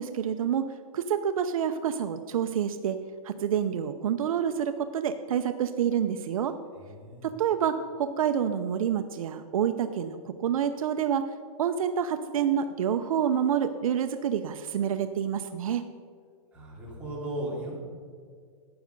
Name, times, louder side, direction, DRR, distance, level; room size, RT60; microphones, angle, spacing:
voice 1, 0.0-3.0 3.2-6.6 7.2-11.3 11.6-15.9, right 8 dB, 65° right, 9 dB, 0.7 m, -28 dB
voice 2, 6.8-7.3 16.5-17.7, right 1 dB, 5° right, -7 dB, 2.9 m, -36 dB
12.5 x 9.1 x 5.3 m, 2.1 s
hypercardioid pair, 165°, 19 cm